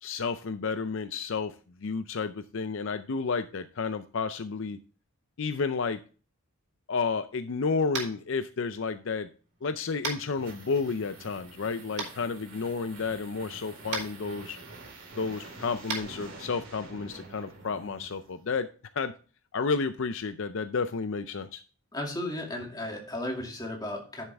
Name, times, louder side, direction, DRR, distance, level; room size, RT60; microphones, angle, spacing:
voice 1, 0.0-1.6 1.8-4.8 5.4-6.0 6.9-9.3 9.6-14.6 15.2-18.7 18.9-19.1 19.5-21.6, left 4 dB, 60° left, 10 dB, 0.5 m, -31 dB
Tap, 7.9-8.2 10.0-10.2 12.0-12.1 13.9-14.0 15.8-16.0, right 4 dB, 90° right, 3.7 m, -32 dB
sound 1, 9.7-18.6, right 2 dB, 55° right, 3.0 m, -47 dB
voice 2, 21.9-24.3, left 1 dB, 20° left, 0 dB, 2.3 m, -34 dB
10.5 x 7.4 x 3.4 m, 0.38 s
head